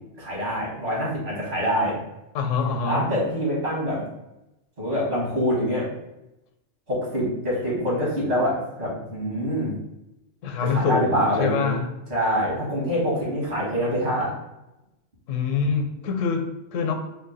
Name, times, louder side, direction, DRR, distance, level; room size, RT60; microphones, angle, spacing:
voice 1, 0.2-2.0 2.8-4.1 4.8-5.9 6.9-9.7 10.6-11.7 12.1-14.3, equal, 60° right, -5 dB, 1.7 m, -25 dB
voice 2, 2.3-3.1 10.4-11.9 15.3-16.9, left 5 dB, 85° left, 5 dB, 1.0 m, -25 dB
3.7 x 2.2 x 3.9 m, 0.92 s
omnidirectional pair, 1.3 m